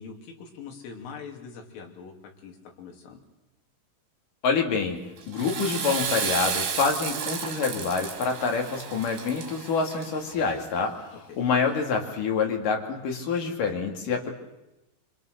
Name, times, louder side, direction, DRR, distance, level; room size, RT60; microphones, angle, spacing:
voice 1, 0.0-2.1 2.4-3.2 11.1-11.4, left 5 dB, 75° left, 2 dB, 5.4 m, -43 dB
voice 2, 4.4-5.0 5.3-11.0 11.4-14.3, left 5 dB, 50° left, 2 dB, 3.6 m, -26 dB
Water / Toilet flush, 5.2-10.4, right 6 dB, 60° right, 4.3 m, -32 dB
26.0 x 25.0 x 6.7 m, 0.95 s
omnidirectional pair, 5.8 m